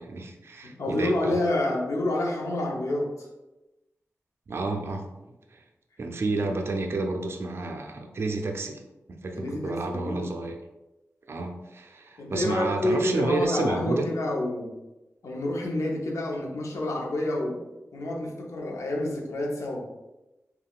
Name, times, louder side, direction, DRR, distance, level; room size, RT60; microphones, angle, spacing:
voice 1, 0.0-1.4 4.5-5.1 5.5-5.6 6.0-8.8 9.2-10.5 11.3-14.1, right 3 dB, 55° right, 3 dB, 0.4 m, -30 dB
voice 2, 0.6-3.3 9.3-10.3 12.2-14.8 15.2-17.6 17.9-19.9, left 1 dB, 80° left, -1 dB, 0.6 m, -28 dB
3.5 x 2.3 x 2.2 m, 1.0 s
cardioid pair, 65°, 5 cm